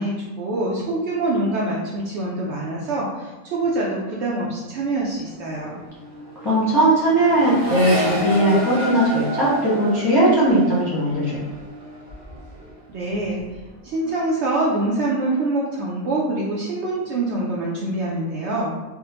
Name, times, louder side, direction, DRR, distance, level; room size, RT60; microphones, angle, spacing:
voice 1, 0.0-5.8 12.9-13.4 13.8-18.7, right 2 dB, 65° right, -4 dB, 0.7 m, -25 dB
Accelerating revving vroom, 4.7-5.0 5.2-12.7 13.1-13.7, equal, 35° right, 1.1 m, -31 dB
voice 2, 6.4-11.4, right 1 dB, 20° left, -9 dB, 0.7 m, -18 dB
3.5 x 2.1 x 2.8 m, 1.1 s
omnidirectional pair, 1.4 m